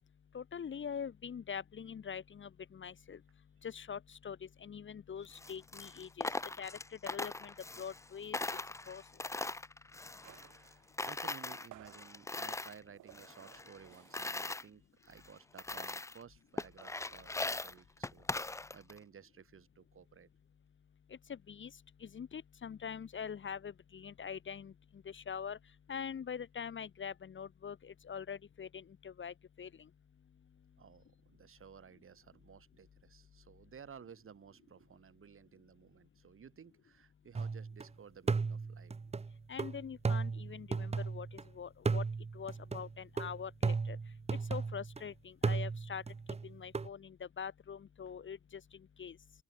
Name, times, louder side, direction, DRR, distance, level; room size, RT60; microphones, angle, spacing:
voice 1, 0.3-3.2 3.6-6.3 6.6-6.7 7.0-8.4 8.9-9.0 21.3-21.7 22.0-24.7 25.0-25.6 25.9-29.7 39.5-42.0 42.3-44.0 44.5-46.0 46.4-48.6 49.0-49.2, left 7 dB, 40° left, 1.1 m, -44 dB
Coin (dropping), 5.3-8.1 8.3-10.7 11.0-12.8 13.1-14.6 15.2-15.3 15.6-16.2 16.6-19.0, left 2 dB, 10° left, 0.6 m, -40 dB
sound 1, 10.2-14.5 14.8-15.0 15.3-17.2, right 15 dB, 80° right, 2.1 m, -60 dB
voice 2, 10.4-20.3 30.8-38.9, right 7 dB, 45° right, 2.3 m, -56 dB
sound 2, 37.4-37.9 38.3-41.4 41.9-45.0 45.4-46.9, right 4 dB, 20° right, 0.9 m, -36 dB
open air
cardioid pair, 90°, 30 cm